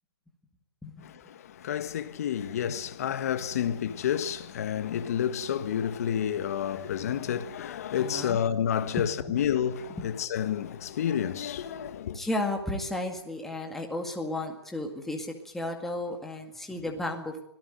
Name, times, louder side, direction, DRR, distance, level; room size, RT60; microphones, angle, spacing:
voice 1, 1.0-12.2, left 9 dB, 35° left, 1.6 m, -30 dB
voice 2, 8.0-8.4 9.0-9.4 10.0-10.1 12.1-17.4, left 1 dB, ahead, 2.0 m, -34 dB
25.5 x 17.5 x 9.2 m
hypercardioid pair, 165°, 14 cm